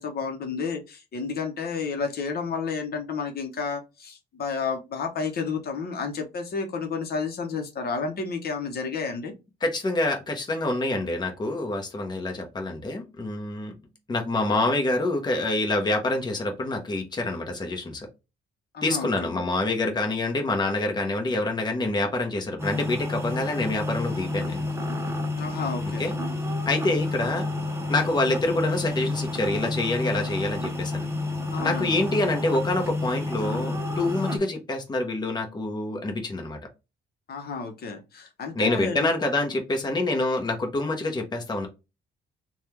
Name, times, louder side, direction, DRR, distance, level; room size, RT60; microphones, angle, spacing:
voice 1, 0.0-9.3 18.7-19.4 25.4-26.1 31.5-31.9 37.3-39.1, left 5 dB, 55° left, 4 dB, 0.8 m, -31 dB
voice 2, 9.6-13.7 14.1-18.1 18.8-24.7 26.0-26.1 26.7-27.5 27.9-31.1 31.6-36.6 38.5-41.7, left 2 dB, 20° left, 3 dB, 0.8 m, -26 dB
Noisy fridge, 22.6-34.4, left 2 dB, 15° right, 0.7 m, -30 dB
3.3 x 2.3 x 2.9 m, 0.26 s
cardioid pair, 105°, 19 cm